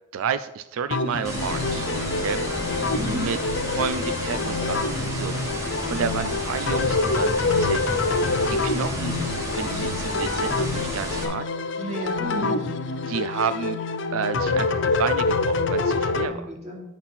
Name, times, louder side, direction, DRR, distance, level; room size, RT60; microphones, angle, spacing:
voice 1, 0.1-1.9 2.2-2.4 3.2-3.4 3.7-5.3 5.9-7.9 8.5-9.1 9.5-11.4 12.4-12.5 13.1-13.8 14.1-16.5, right 7 dB, 90° right, 12 dB, 0.4 m, -30 dB
sound 1, 0.9-16.3, left 3 dB, 60° left, 0.6 m, -26 dB
sound 2, 1.2-11.2, equal, 15° right, 1.5 m, -32 dB
voice 2, 2.1-2.7 2.9-3.3 5.3-5.4 9.7-10.4 11.5-12.6 15.8-16.8, equal, 35° right, -2 dB, 2.2 m, -35 dB
10.5 x 4.2 x 5.7 m, 0.90 s
head